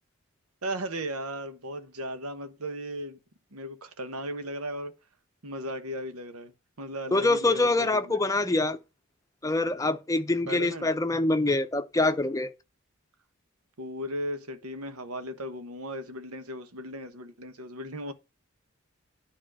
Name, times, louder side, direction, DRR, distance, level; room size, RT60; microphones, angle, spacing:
voice 1, 0.6-3.2 3.5-4.9 5.4-8.2 10.5-10.9 13.8-18.1, equal, 85° right, 1.2 m, -36 dB
voice 2, 7.1-8.8 9.4-12.5, left 2 dB, 15° left, 0.6 m, -25 dB
10.0 x 4.2 x 6.2 m
head